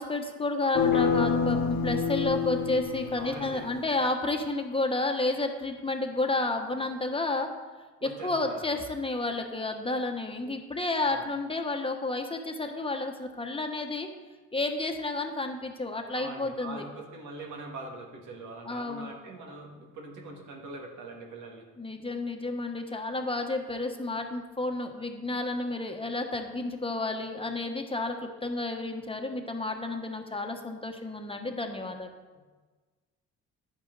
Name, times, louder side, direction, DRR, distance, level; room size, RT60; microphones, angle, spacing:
voice 1, 0.0-7.5 8.0-14.1 14.5-16.8 18.6-19.1 21.8-32.1, left 2 dB, 20° left, 4 dB, 1.1 m, -31 dB
sound 1, 0.7-3.7, left 6 dB, 70° left, 1.2 m, -27 dB
Piano, 0.9-4.5, left 7 dB, 40° left, 0.8 m, -43 dB
voice 2, 3.2-3.7 8.0-8.8 11.0-11.3 16.1-21.6 32.3-32.4, right 2 dB, 80° right, 0 dB, 2.1 m, -43 dB
10.5 x 8.6 x 4.0 m, 1.4 s
cardioid pair, 90°, 30 cm